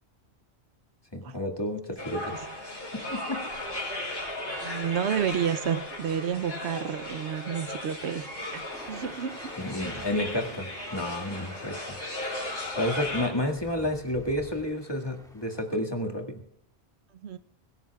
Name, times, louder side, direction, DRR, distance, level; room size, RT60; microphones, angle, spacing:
voice 1, 1.1-2.6 2.9-3.4 4.5-4.6 9.6-12.0 12.7-16.4, left 1 dB, 25° left, 2.0 m, -31 dB
sound 1, 2.0-13.3, left 1 dB, 65° left, 6.2 m, -36 dB
voice 2, 4.4-9.5 17.2-17.4, right 8 dB, 80° right, 1.0 m, -31 dB
sound 2, 8.7-15.6, equal, 5° left, 2.3 m, -49 dB
24.0 x 16.5 x 2.4 m
omnidirectional pair, 1.1 m